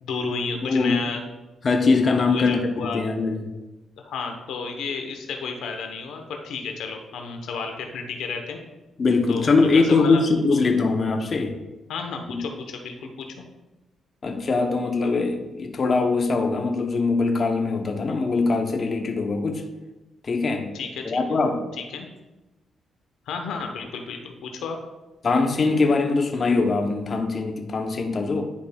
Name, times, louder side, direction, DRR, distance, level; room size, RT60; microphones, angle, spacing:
voice 1, 0.0-1.2 2.2-3.0 4.0-8.6 9.3-10.2 11.9-13.3 20.7-21.4 21.9-22.1 23.3-24.8, left 5 dB, 85° left, 4 dB, 0.9 m, -32 dB
voice 2, 0.6-1.0 1.6-3.4 9.0-11.5 12.3-12.4 14.2-19.6 20.2-20.7 21.1-21.6 25.2-28.5, left 3 dB, 45° left, 4 dB, 0.7 m, -22 dB
10.5 x 5.1 x 2.3 m, 1.1 s
cardioid pair, 85°, 0 cm